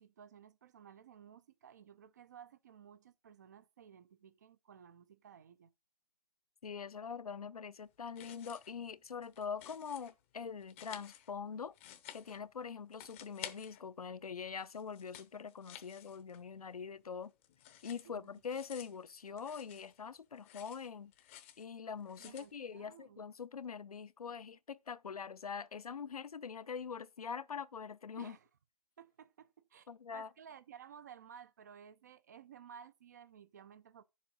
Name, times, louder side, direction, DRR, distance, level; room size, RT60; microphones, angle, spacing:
voice 1, 0.0-5.7 18.0-18.3 22.2-23.2 28.2-28.5 29.0-34.0, right 8 dB, 25° right, 0.5 m, -56 dB
voice 2, 6.6-11.7 12.1-17.3 17.8-21.1 21.6-28.4 29.9-30.3, left 6 dB, 65° left, 0.6 m, -44 dB
sound 1, 8.0-8.8 9.1-10.1 10.6-12.6 12.9-14.2 14.5-16.6 16.9-20.1 20.4-21.7 22.1-22.5, left 12 dB, 20° left, 0.7 m, -53 dB
10.5 x 7.2 x 4.0 m
figure-of-eight pair, 145°, 20 cm